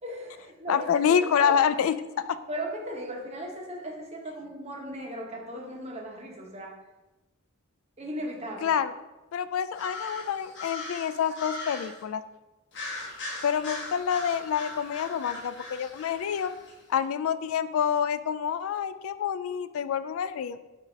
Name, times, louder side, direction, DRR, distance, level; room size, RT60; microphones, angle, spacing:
voice 1, 0.0-0.9 1.4-1.6 2.5-6.8 8.0-8.7, right 1 dB, 30° right, -1 dB, 1.0 m, -37 dB
voice 2, 0.7-2.4 8.6-8.9 9.3-12.2 13.4-16.5 16.9-20.6, left 8 dB, 80° left, 13 dB, 0.3 m, -27 dB
sound 1, 9.7-12.0 12.7-16.7, left 2 dB, 60° left, 1.3 m, -39 dB
6.8 x 2.8 x 5.1 m, 1.1 s
head